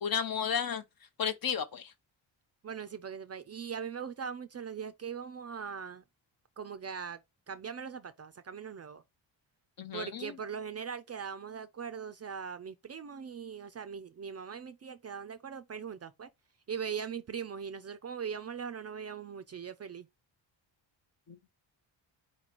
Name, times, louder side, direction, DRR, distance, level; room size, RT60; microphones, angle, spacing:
voice 1, 0.0-0.8 1.2-1.9 9.8-10.4 21.3-21.4, left 7 dB, 50° left, 0.7 m, -33 dB
voice 2, 2.6-6.0 6.6-7.2 7.5-9.0 9.9-16.3 16.7-20.1, right 7 dB, 35° right, 0.4 m, -40 dB
4.3 x 2.9 x 4.0 m
cardioid pair, 90°, 47 cm